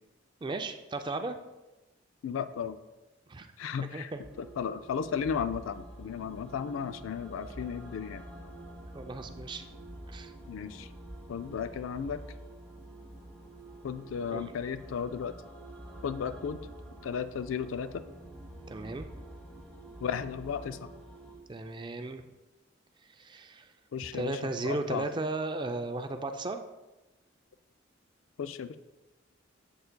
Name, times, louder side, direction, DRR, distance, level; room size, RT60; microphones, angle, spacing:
voice 1, 0.4-1.4 3.3-3.5 3.9-4.2 8.9-9.6 10.1-10.3 14.3-14.5 18.7-19.1 21.5-22.3 23.1-23.7 24.1-26.6, right 2 dB, 25° right, 7 dB, 0.4 m, -35 dB
voice 2, 2.2-2.8 3.6-4.1 4.4-8.2 10.5-10.9 11.3-12.2 13.8-15.3 16.0-16.6 17.0-18.0 20.0-20.9 23.9-25.1 28.4-28.8, left 7 dB, 85° left, 12 dB, 0.4 m, -34 dB
sound 1, 4.2-21.4, right 1 dB, 5° left, 1.3 m, -47 dB
7.6 x 6.9 x 2.2 m, 1.1 s
head